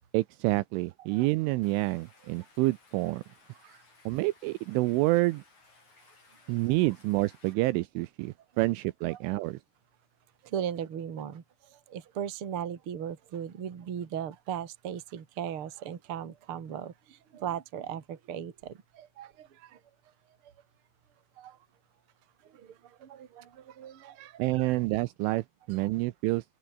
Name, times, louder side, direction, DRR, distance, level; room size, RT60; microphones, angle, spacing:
voice 1, 0.1-3.2 4.1-5.4 6.5-9.6 24.4-26.4, right 20 dB, 85° right, 2.9 m, -28 dB
Stream, 1.6-7.5, left 3 dB, 35° left, 8.6 m, -60 dB
voice 2, 10.5-11.4 11.9-19.8 21.4-21.6 22.5-22.7 23.0-24.8 25.8-25.9, right 9 dB, 45° right, 1.9 m, -38 dB
open air
omnidirectional pair, 6.0 m